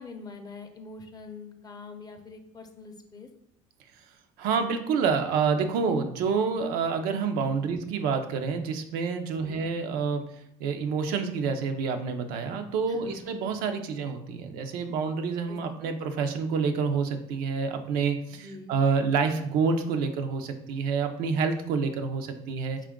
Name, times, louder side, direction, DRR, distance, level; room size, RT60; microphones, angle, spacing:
voice 1, 0.0-3.3 7.6-7.8 9.4-9.6 12.9-13.3 15.5-16.0 18.3-18.7, left 3 dB, 25° left, 6 dB, 0.6 m, -44 dB
voice 2, 4.4-10.2 10.6-22.9, right 5 dB, 70° right, 6 dB, 0.5 m, -28 dB
4.5 x 2.4 x 3.6 m, 0.77 s
supercardioid pair, 100°, 16 cm